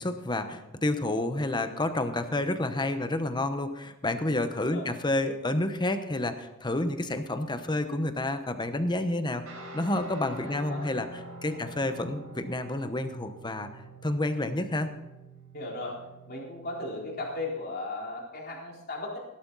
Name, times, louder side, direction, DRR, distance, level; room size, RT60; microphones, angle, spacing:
voice 1, 0.0-11.1 11.4-13.7 14.0-14.9, left 1 dB, 20° left, 9 dB, 1.0 m, -29 dB
Guitar, 9.5-17.6, right 1 dB, 90° right, 5.4 m, -46 dB
voice 2, 10.4-11.0 11.5-11.6 15.5-19.2, left 2 dB, 45° left, -2 dB, 3.9 m, -37 dB
16.0 x 12.0 x 4.1 m, 0.98 s
head